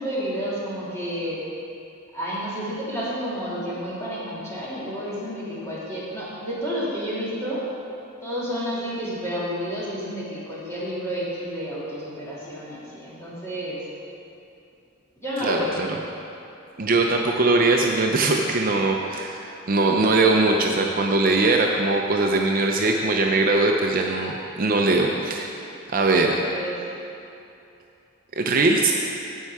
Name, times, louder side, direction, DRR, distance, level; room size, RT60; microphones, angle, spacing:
voice 1, 0.0-1.4 2.1-7.6 8.2-13.8 15.2-15.8 25.7-25.8 26.1-27.0, equal, 15° left, -9 dB, 2.5 m, -30 dB
voice 2, 15.4-15.9 16.8-25.5 25.9-26.4 28.4-28.9, right 3 dB, 40° right, 1 dB, 0.5 m, -21 dB
15.5 x 5.5 x 4.7 m, 2.8 s
head